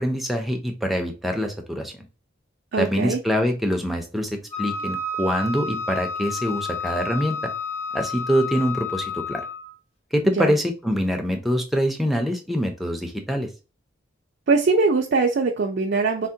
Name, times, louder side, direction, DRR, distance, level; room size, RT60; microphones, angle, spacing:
voice 1, 0.0-1.9 2.8-4.3 4.6-7.4 7.9-9.5 10.1-13.5, equal, ahead, 3 dB, 0.5 m, -24 dB
voice 2, 2.7-3.2 10.4-10.5 14.5-16.3, right 4 dB, 60° right, 1 dB, 0.4 m, -21 dB
Wind instrument woodwind instrument, 4.5-9.7, left 4 dB, 35° left, 0.9 m, -30 dB
3.4 x 2.1 x 2.6 m, 0.32 s
head